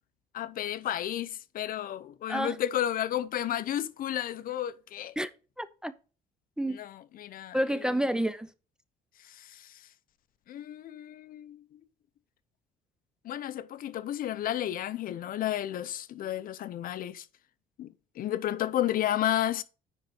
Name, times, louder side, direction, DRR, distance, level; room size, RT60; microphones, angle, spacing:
voice 1, 0.3-5.1 6.7-7.6 9.2-9.9 10.5-11.8 13.2-17.3 17.8-19.6, left 11 dB, 55° left, 0.6 m, -32 dB
voice 2, 5.6-5.9 6.6-6.8 7.5-8.5, equal, 5° right, 0.5 m, -29 dB
9.9 x 4.0 x 4.7 m
cardioid pair, 110°, 17 cm